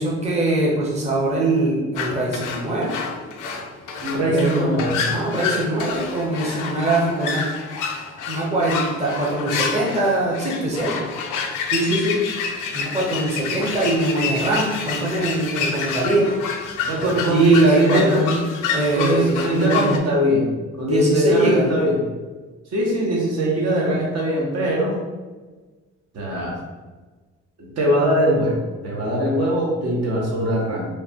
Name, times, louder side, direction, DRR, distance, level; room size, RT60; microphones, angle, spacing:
voice 1, 0.0-3.0 4.3-4.7 5.1-7.4 8.2-11.1 12.7-16.3 17.0-18.4 18.7-20.0 20.9-21.7, right 2 dB, 20° right, -4 dB, 0.7 m, -22 dB
sound 1, 1.9-20.0, left 5 dB, 90° left, 0.5 m, -28 dB
voice 2, 4.0-5.1 11.7-12.2 16.8-18.2 18.9-22.0 22.7-25.0 26.1-26.6 27.6-30.9, equal, 55° right, -3 dB, 0.8 m, -21 dB
3.1 x 2.2 x 2.7 m, 1.3 s
cardioid pair, 90°, 30 cm